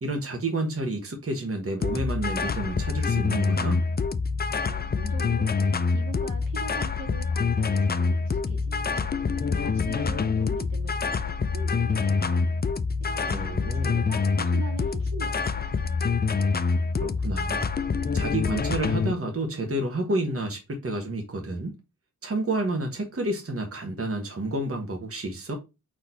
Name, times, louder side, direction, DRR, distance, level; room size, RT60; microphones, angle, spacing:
voice 1, 0.0-3.8 13.3-14.1 17.0-17.7 18.1-21.7 22.2-25.6, right 2 dB, 40° right, 1.2 m, -30 dB
sound 1, 1.8-19.1, left 4 dB, 30° left, 0.4 m, -26 dB
voice 2, 4.5-12.5 13.0-15.8 16.0-16.1, right 2 dB, 70° right, 1.7 m, -43 dB
4.2 x 3.1 x 4.1 m
wide cardioid pair, 60°, 35 cm